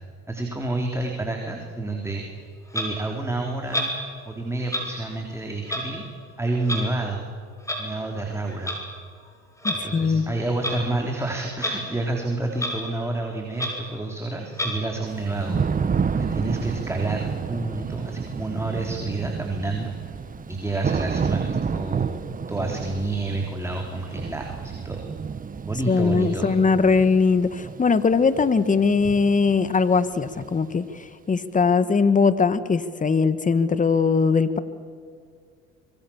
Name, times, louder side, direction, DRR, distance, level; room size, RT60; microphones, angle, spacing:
voice 1, 0.3-2.3 2.7-3.9 4.3-6.0 6.4-7.3 7.8-8.7 9.8-15.6 16.1-19.9 20.5-25.0 25.7-26.5, right 2 dB, 10° right, 1 dB, 3.7 m, -29 dB
Clock, 2.7-2.9 3.7-3.9 4.7-4.8 5.7-5.8 6.7-6.8 7.7-7.8 8.5-8.8 9.6-9.8 10.6-10.8 11.6-11.7 12.1-12.2 12.5-12.7 13.1-13.2 13.5-13.7 14.5-14.7, equal, 10° left, 7.0 m, -27 dB
voice 2, 9.6-10.2 25.9-30.8 31.3-34.6, left 5 dB, 25° left, 14 dB, 1.7 m, -20 dB
Thunder / Rain, 15.1-30.8, right 6 dB, 25° right, 1.3 m, -30 dB
25.0 x 23.0 x 7.3 m, 2.2 s
supercardioid pair, 80°, 31 cm